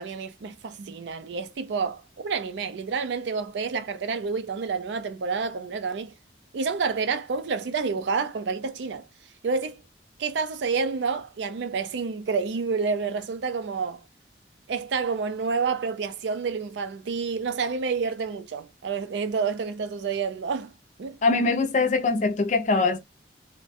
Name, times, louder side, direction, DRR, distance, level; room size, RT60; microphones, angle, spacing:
voice 1, 0.0-6.1 6.5-9.1 9.4-9.8 10.2-14.0 14.7-20.7 21.0-21.2, right 5 dB, 75° right, 0.4 m, -29 dB
voice 2, 21.2-23.0, left 3 dB, 40° left, 0.4 m, -22 dB
2.6 x 2.1 x 2.4 m
head